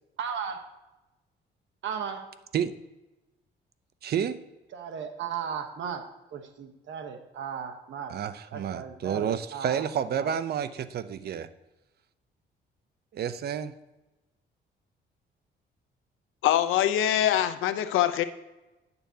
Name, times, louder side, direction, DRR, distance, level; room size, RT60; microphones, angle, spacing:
voice 1, 0.2-0.7 1.8-2.3 4.7-6.0 6.3-8.2 8.5-9.8 10.1-10.3, right 7 dB, 70° right, 6 dB, 1.1 m, -36 dB
voice 2, 4.0-4.4 8.1-11.5 13.1-13.8, right 8 dB, 55° right, 13 dB, 0.5 m, -30 dB
voice 3, 16.4-18.2, left 11 dB, 85° left, 11 dB, 0.6 m, -24 dB
10.0 x 6.9 x 2.8 m, 1.0 s
cardioid pair, 90°, 20 cm